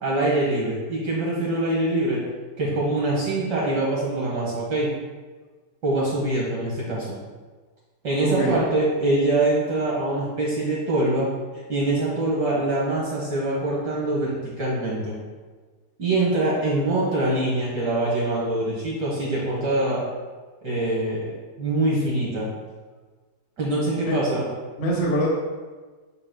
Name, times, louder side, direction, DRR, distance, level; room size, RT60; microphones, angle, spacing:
voice 1, 0.0-2.2 2.6-4.9 5.8-7.2 8.0-11.3 11.7-15.2 16.0-20.0 20.6-21.3 21.6-22.5 23.6-24.4, right 2 dB, 55° right, -5 dB, 1.7 m, -24 dB
voice 2, 8.2-8.6 24.1-24.2 24.8-25.3, right 1 dB, 40° left, -3 dB, 1.1 m, -23 dB
7.6 x 7.4 x 2.2 m, 1.4 s
omnidirectional pair, 2.4 m